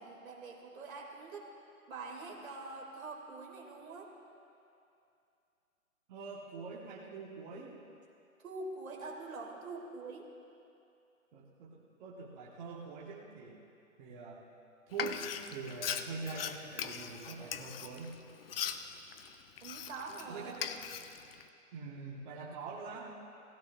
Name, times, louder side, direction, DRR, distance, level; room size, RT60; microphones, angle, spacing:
voice 1, 0.0-1.5 1.9-4.1 8.4-10.3 19.6-20.6, right 3 dB, 65° right, 0 dB, 2.7 m, -45 dB
voice 2, 6.1-7.7 11.3-13.6 14.0-14.5 14.9-18.2 20.3-20.6 21.7-23.1, right 4 dB, 30° right, -5 dB, 1.5 m, -44 dB
Frying (food), 14.9-20.2 20.5-21.4, left 8 dB, 45° left, 0.6 m, -40 dB
18.5 x 16.5 x 2.5 m, 2.6 s
hypercardioid pair, 145°, 43 cm